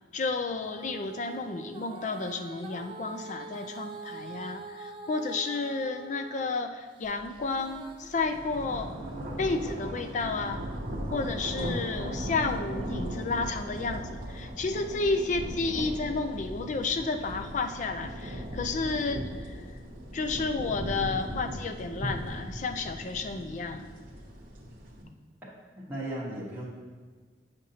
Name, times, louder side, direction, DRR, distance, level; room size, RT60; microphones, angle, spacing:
voice 1, 0.1-8.9 9.4-10.6 11.1-19.6 20.1-23.9, left 3 dB, 40° left, 7 dB, 0.4 m, -31 dB
Female singing, 0.6-6.5 7.0-11.3 11.9-12.0, right 3 dB, 30° right, 0.5 m, -45 dB
sound 1, 7.2-7.4 7.8-25.0, equal, 50° right, 0.9 m, -37 dB
voice 2, 25.8-26.6, right 1 dB, 10° right, -7 dB, 1.1 m, -36 dB
8.5 x 5.1 x 2.8 m, 1.5 s
head